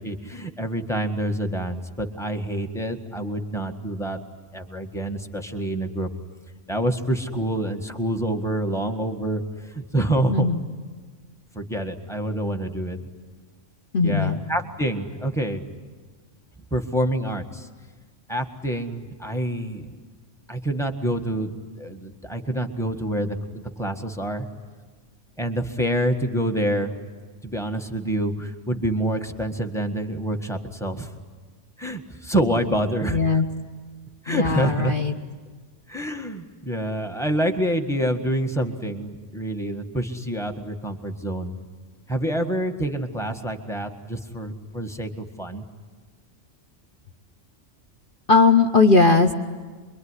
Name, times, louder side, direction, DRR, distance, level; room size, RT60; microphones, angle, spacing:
voice 1, 0.0-4.2 4.5-6.1 6.7-10.5 11.5-13.0 14.0-15.6 16.7-17.7 18.3-20.0 20.5-24.5 25.4-26.9 27.4-31.1 31.8-33.4 34.2-34.9 35.9-41.5 42.1-45.6, right 1 dB, ahead, 4 dB, 1.6 m, -27 dB
voice 2, 10.3-10.6 13.9-14.4 33.1-33.5 34.3-35.2 48.3-49.3, left 4 dB, 45° left, 3 dB, 1.1 m, -18 dB
26.5 x 23.0 x 9.8 m, 1.5 s
omnidirectional pair, 1.3 m